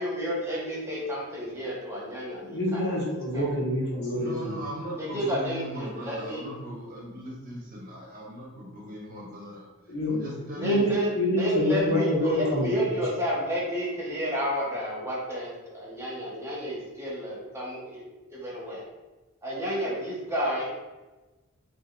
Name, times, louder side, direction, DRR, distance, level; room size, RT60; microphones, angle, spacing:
voice 1, 0.0-3.0 3.3-3.4 5.0-6.4 10.6-11.1 11.4-18.0 18.3-18.8 19.4-20.7, equal, 15° right, -5 dB, 1.3 m, -31 dB
voice 2, 2.4-4.6 9.9-13.0, left 1 dB, 55° left, -5 dB, 1.4 m, -27 dB
voice 3, 4.1-9.7 10.1-10.8, right 1 dB, 40° right, -2 dB, 0.9 m, -39 dB
7.2 x 2.6 x 2.6 m, 1.1 s
head